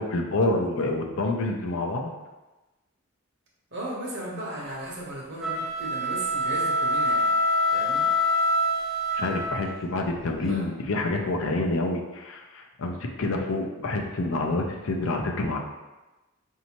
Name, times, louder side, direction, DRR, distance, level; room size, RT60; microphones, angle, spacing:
voice 1, 0.0-2.1 9.2-15.6, left 2 dB, 65° left, 2 dB, 0.5 m, -27 dB
voice 2, 3.7-7.3 7.7-8.1 10.5-10.7, right 1 dB, 50° right, -3 dB, 1.0 m, -36 dB
sound 1, 5.3-9.9, left 1 dB, ahead, 0.3 m, -25 dB
5.2 x 2.7 x 2.9 m, 1.1 s
head